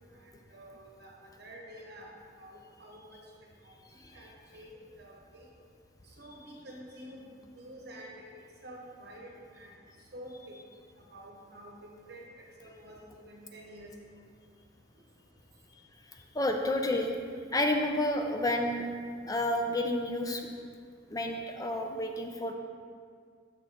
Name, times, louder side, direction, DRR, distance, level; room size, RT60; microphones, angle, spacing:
voice 1, 0.5-1.1 1.4-2.1 2.4-3.2 3.6-3.7 4.1-5.4 6.2-8.2 8.6-9.7 10.1-10.6 11.1-11.8 12.1-12.2 12.6-13.9, right 1 dB, 60° right, -2 dB, 1.1 m, -48 dB
voice 2, 16.3-17.1 17.5-18.9 19.3-20.5 21.1-22.5, left 1 dB, 20° left, 3 dB, 0.5 m, -30 dB
6.6 x 6.2 x 3.6 m, 2.1 s
head